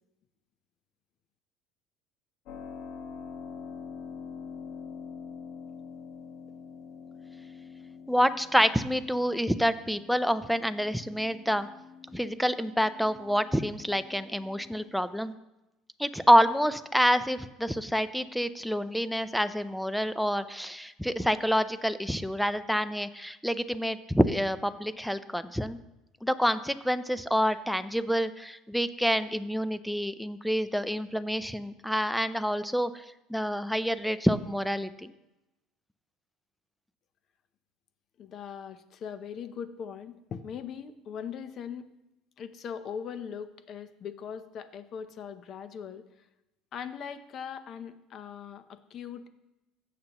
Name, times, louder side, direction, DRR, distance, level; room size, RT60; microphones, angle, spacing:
Keyboard (musical), 2.5-15.0, left 6 dB, 65° left, 1.1 m, -45 dB
voice 1, 8.1-11.7 12.1-15.3 16.0-25.8 26.2-35.1, equal, ahead, 13 dB, 0.4 m, -27 dB
voice 2, 38.2-41.9 42.4-46.0 46.7-49.3, left 7 dB, 45° left, 11 dB, 0.7 m, -40 dB
15.5 x 6.7 x 3.0 m, 0.95 s
cardioid pair, 130°, 0 cm